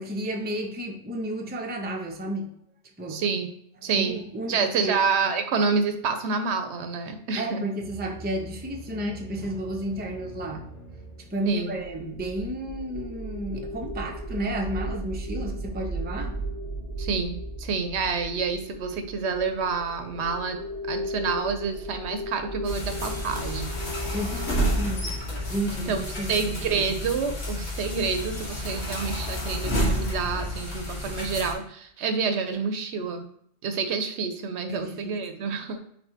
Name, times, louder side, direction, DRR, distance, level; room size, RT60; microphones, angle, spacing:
voice 1, 0.0-2.5 3.0-3.2 4.0-5.1 7.4-10.6 11.3-16.4 24.1-25.2 25.5-26.4 26.7-26.9 34.7-35.2, right 1 dB, 15° right, 2 dB, 0.4 m, -32 dB
voice 2, 3.1-3.5 3.8-4.2 4.5-7.6 11.5-11.8 17.0-20.6 20.9-23.7 25.7-33.3 33.6-35.8, right 5 dB, 85° right, 7 dB, 0.9 m, -28 dB
sound 1, 7.8-12.6, right 2 dB, 50° left, 1.1 m, -44 dB
sound 2, 11.5-26.6, right 1 dB, 25° left, 0.7 m, -36 dB
sound 3, 22.6-31.5, equal, 75° left, 1.5 m, -30 dB
4.5 x 3.8 x 2.8 m, 0.69 s
omnidirectional pair, 1.1 m